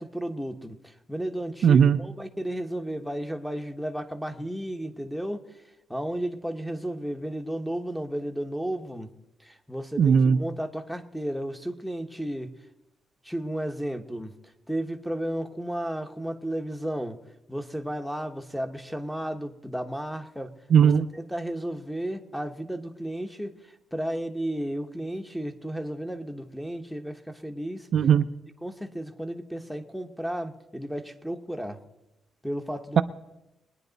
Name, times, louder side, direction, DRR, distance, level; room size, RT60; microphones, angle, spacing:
voice 1, 0.0-5.4 5.9-9.1 9.4-12.5 13.2-14.3 14.7-17.2 17.5-20.5 20.8-27.9 28.6-31.8 32.4-33.0, right 1 dB, ahead, 7 dB, 1.0 m, -33 dB
voice 2, 1.6-2.0 10.0-10.4 20.7-21.1 27.9-28.2, right 7 dB, 60° right, 10 dB, 0.5 m, -18 dB
23.0 x 9.8 x 4.0 m, 0.93 s
cardioid pair, 120°, 0 cm